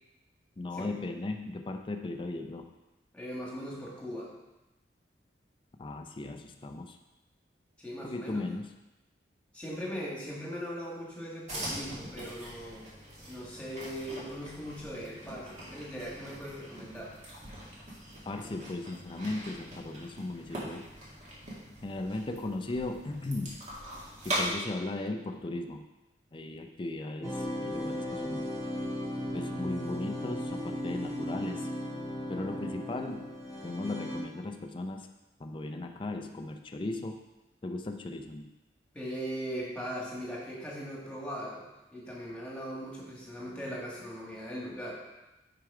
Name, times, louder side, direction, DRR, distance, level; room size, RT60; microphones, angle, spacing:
voice 1, 0.6-2.7 5.8-7.0 8.0-8.7 18.2-20.9 21.8-23.6 24.2-25.9 26.3-28.5 29.3-31.7 32.3-33.3 33.6-35.1 35.4-37.2 37.6-38.5, left 2 dB, 30° left, 4 dB, 0.4 m, -37 dB
voice 2, 3.1-4.3 7.8-8.4 9.5-12.9 13.3-17.2 38.9-41.6 41.9-44.9, equal, 5° left, -4 dB, 1.8 m, -39 dB
sound 1, 11.5-24.5, equal, 40° right, 2.0 m, -41 dB
sound 2, 27.2-34.2, equal, 15° right, 2.1 m, -36 dB
6.3 x 4.9 x 4.8 m, 1.0 s
head